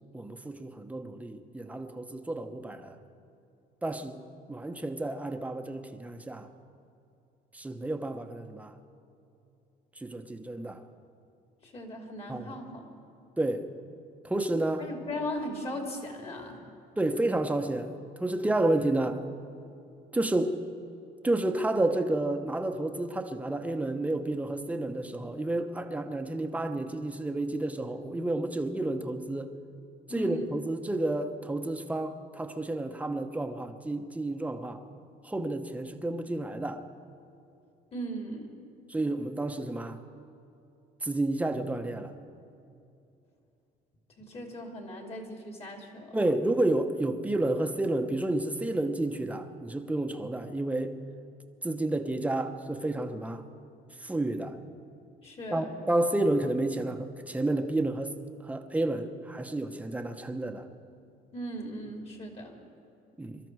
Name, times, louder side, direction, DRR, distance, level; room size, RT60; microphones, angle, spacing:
voice 1, 0.1-3.0 3.8-4.2 4.5-6.5 7.5-8.7 10.0-10.8 12.3-12.5 13.4-13.7 14.2-14.9 17.0-17.9 18.2-19.2 20.1-20.6 21.2-29.5 30.1-34.8 35.2-36.8 38.9-40.0 41.0-42.1 46.1-51.0 51.6-53.4 54.0-54.6 55.5-58.1 58.4-60.7 63.2-63.4, right 2 dB, 10° right, 0.9 m, -30 dB
voice 2, 11.6-12.9 14.8-16.6 30.1-30.5 37.9-38.5 44.2-46.2 55.2-55.7 61.3-62.6, equal, 35° left, 2.8 m, -38 dB
23.0 x 13.0 x 4.7 m
cardioid pair, 110°, 17 cm